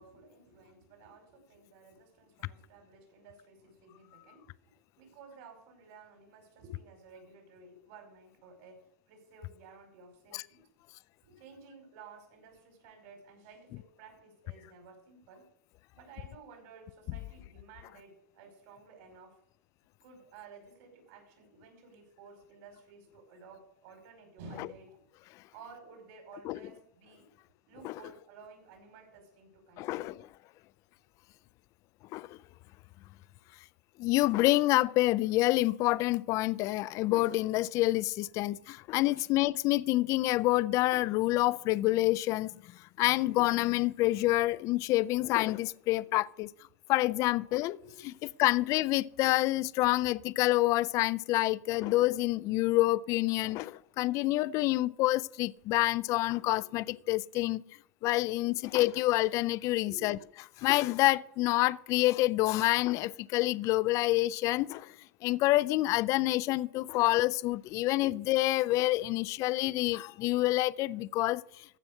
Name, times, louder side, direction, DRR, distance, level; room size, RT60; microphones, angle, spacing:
voice 1, 0.0-4.5 5.0-10.7 11.2-15.5 15.9-19.4 20.0-25.0 25.5-27.3 27.7-30.2 39.2-39.3 46.0-46.2 47.7-48.0 56.4-56.7 58.0-58.5 59.8-60.2 67.2-67.3 68.1-68.2, right 3 dB, 55° right, 5.3 m, -54 dB
voice 2, 29.8-30.3 32.1-32.4 34.0-42.5 43.0-46.5 46.9-47.8 48.0-48.1 48.4-57.6 58.0-60.2 60.6-64.9 65.2-71.4, left 18 dB, 35° left, 0.4 m, -27 dB
14.5 x 6.0 x 6.6 m
supercardioid pair, 140°, 9 cm